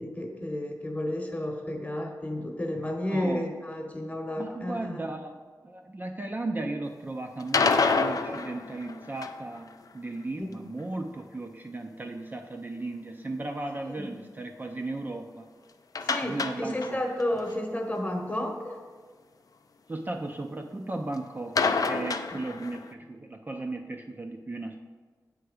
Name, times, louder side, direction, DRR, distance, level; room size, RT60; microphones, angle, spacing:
voice 1, 0.0-5.0 10.4-10.5 13.8-14.1 16.0-18.8 22.0-22.4, left 1 dB, 20° left, 3 dB, 1.0 m, -32 dB
voice 2, 3.1-3.4 4.4-5.4 5.6-15.5 16.2-17.0 19.9-24.7, right 2 dB, 25° right, 3 dB, 0.4 m, -36 dB
sound 1, 7.4-9.6 16.0-17.2 17.5-17.6 18.0-18.1 21.6-22.9, left 4 dB, 55° left, 0.4 m, -27 dB
7.7 x 3.4 x 5.0 m, 1.5 s
wide cardioid pair, 70°, 7 cm